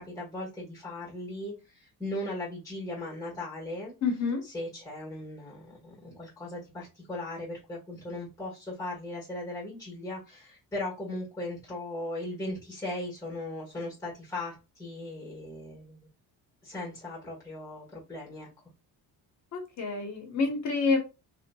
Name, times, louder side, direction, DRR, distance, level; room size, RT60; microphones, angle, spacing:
voice 1, 0.0-3.9 4.5-16.1 16.6-18.5, left 1 dB, 10° left, 1.3 m, -38 dB
voice 2, 4.0-4.4 19.5-21.0, left 4 dB, 45° left, 1.0 m, -28 dB
2.7 x 2.4 x 2.3 m
cardioid pair, 115°, 38 cm